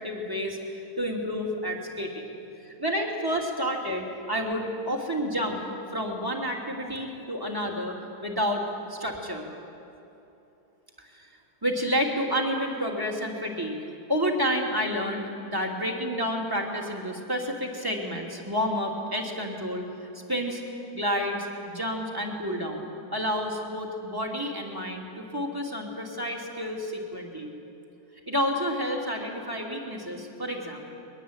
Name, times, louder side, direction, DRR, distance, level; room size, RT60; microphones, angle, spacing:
voice 1, 0.0-2.3 2.6-5.6 5.9-8.6 8.9-9.4 11.0-11.3 11.6-13.8 14.1-19.9 20.3-20.6 20.9-27.5 28.3-30.8, equal, 10° right, 0 dB, 3.0 m, -30 dB
22.5 x 22.0 x 9.0 m, 2.9 s
omnidirectional pair, 2.1 m